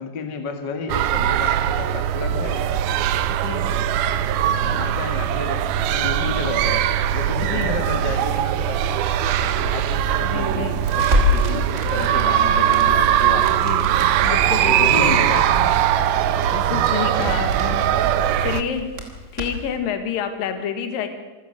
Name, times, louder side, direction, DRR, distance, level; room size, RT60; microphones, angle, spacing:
voice 1, 0.0-2.7 4.2-4.3 4.6-5.6 5.9-8.8 9.4-13.9 14.6-15.5, left 4 dB, 35° left, 5 dB, 2.0 m, -31 dB
sound 1, 0.9-18.6, right 10 dB, 80° right, 2.8 m, -20 dB
voice 2, 3.3-3.7 7.4-7.8 10.2-10.8 13.6-13.9 14.2-15.8 16.5-17.8 18.4-18.9 19.3-21.1, left 8 dB, 70° left, 8 dB, 3.5 m, -28 dB
Crackle, 10.8-19.8, left 2 dB, 20° right, 2.9 m, -29 dB
26.5 x 16.0 x 6.6 m, 1.3 s
omnidirectional pair, 4.3 m